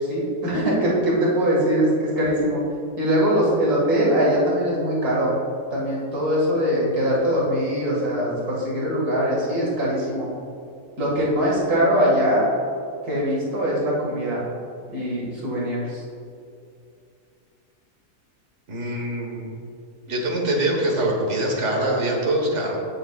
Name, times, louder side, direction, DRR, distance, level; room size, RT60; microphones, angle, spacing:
voice 1, 0.0-2.6 3.0-5.4 5.7-10.3 11.0-12.5 13.0-14.4 14.9-16.0, equal, 70° right, -5 dB, 2.6 m, -22 dB
voice 2, 18.7-19.5 20.1-22.8, right 1 dB, 50° right, -1 dB, 1.7 m, -24 dB
15.5 x 6.9 x 2.4 m, 2.5 s
omnidirectional pair, 1.7 m